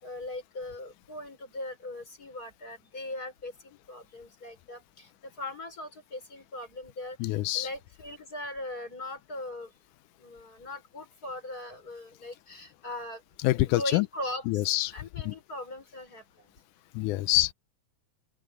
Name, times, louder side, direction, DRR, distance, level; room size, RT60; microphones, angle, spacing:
voice 1, 0.0-5.1 5.4-9.7 10.2-13.2 13.6-14.6 14.9-16.5, left 1 dB, 30° left, 6.5 m, -40 dB
voice 2, 7.2-7.7 13.4-14.1 14.5-14.9 15.3-15.4 17.0-17.5, left 17 dB, 90° left, 2.1 m, -26 dB
open air
omnidirectional pair, 3.5 m